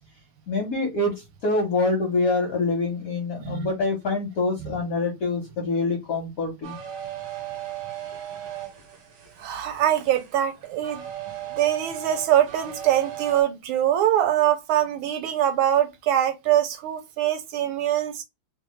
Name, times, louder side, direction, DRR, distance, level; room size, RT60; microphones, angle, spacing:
voice 1, 0.5-6.8, left 3 dB, 65° left, 0.8 m, -25 dB
sound 1, 6.6-13.4, right 11 dB, 55° right, 1.4 m, -37 dB
voice 2, 9.4-11.0 11.6-18.2, right 11 dB, 75° right, 1.3 m, -23 dB
3.3 x 2.3 x 3.0 m
omnidirectional pair, 2.4 m